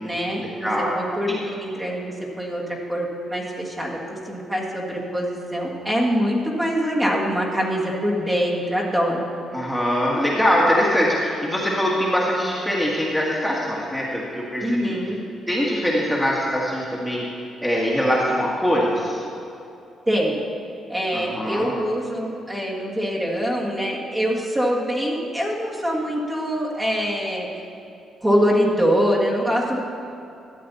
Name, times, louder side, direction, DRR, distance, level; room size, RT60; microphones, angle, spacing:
voice 1, 0.0-2.6 2.9-9.3 14.6-15.2 20.1-20.4 20.9-27.5 28.2-29.8, equal, 15° right, -4 dB, 1.8 m, -24 dB
voice 2, 0.6-0.9 1.3-1.4 9.5-14.9 15.5-17.2 17.6-19.2 21.1-21.7, equal, ahead, -5 dB, 1.7 m, -22 dB
13.0 x 7.8 x 4.1 m, 2.6 s
cardioid pair, 90°, 0 cm